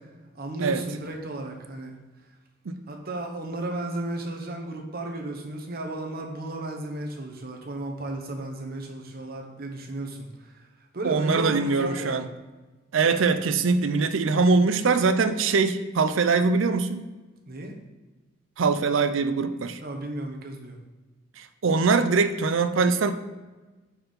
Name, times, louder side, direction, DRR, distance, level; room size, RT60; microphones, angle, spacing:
voice 1, 0.3-1.9 2.9-12.2 17.5-17.7 19.8-20.8, right 2 dB, 50° right, 2 dB, 1.1 m, -34 dB
voice 2, 11.0-12.3 12.9-17.0 18.6-19.8 21.4-23.1, right 4 dB, 75° right, 10 dB, 0.5 m, -22 dB
5.7 x 4.6 x 5.2 m, 1.2 s
head